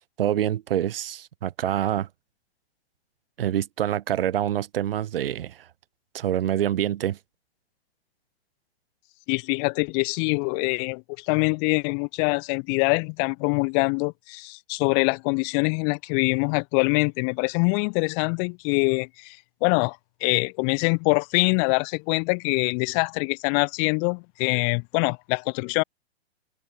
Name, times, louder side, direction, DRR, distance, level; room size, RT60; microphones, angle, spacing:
voice 1, 0.2-2.1 3.4-5.6 6.1-7.2, right 11 dB, 60° right, 2.1 m, -26 dB
voice 2, 9.3-25.8, left 40 dB or more, 30° left, 1.5 m, -24 dB
hypercardioid pair, 140°, 32 cm